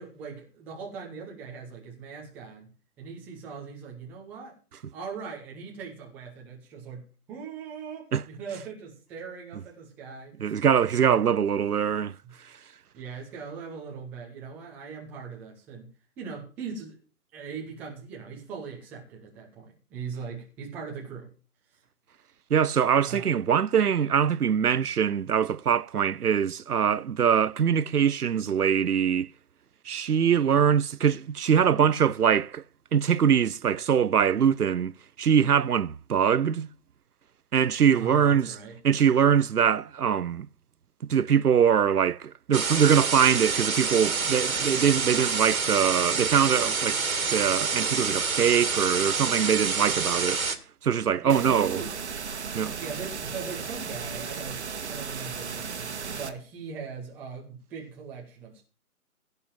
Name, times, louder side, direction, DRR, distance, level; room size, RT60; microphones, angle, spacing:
voice 1, 0.0-2.7 3.0-4.6 4.9-10.5 10.9-11.2 12.2-12.3 12.9-15.9 16.2-17.0 17.3-21.3 23.1-23.3 30.5-30.7 37.9-38.8 51.2-51.9 52.7-58.6, right 6 dB, 5° right, 0.9 m, -40 dB
voice 2, 10.4-12.2 22.5-29.3 29.9-32.6 32.9-36.7 37.5-38.5 38.8-40.5 41.1-47.0 47.3-50.4 50.8-51.8 52.5-52.8, right 8 dB, 90° right, 0.7 m, -23 dB
sound 1, 42.5-50.6, right 5 dB, 65° right, 2.1 m, -27 dB
sound 2, 51.3-56.3, right 6 dB, 50° right, 1.6 m, -35 dB
16.5 x 5.5 x 7.3 m
figure-of-eight pair, 150°, 44 cm